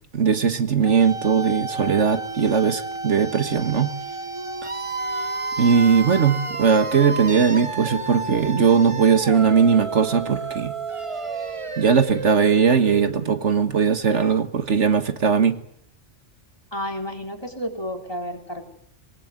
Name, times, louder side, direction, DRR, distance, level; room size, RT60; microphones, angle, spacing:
voice 1, 0.1-3.9 5.6-10.7 11.8-15.6, right 6 dB, 75° right, 9 dB, 1.8 m, -19 dB
sound 1, 0.8-13.6, right 3 dB, 25° right, 1.3 m, -31 dB
voice 2, 16.7-18.7, equal, 20° left, 3 dB, 3.9 m, -31 dB
25.0 x 21.0 x 9.4 m, 0.70 s
omnidirectional pair, 1.2 m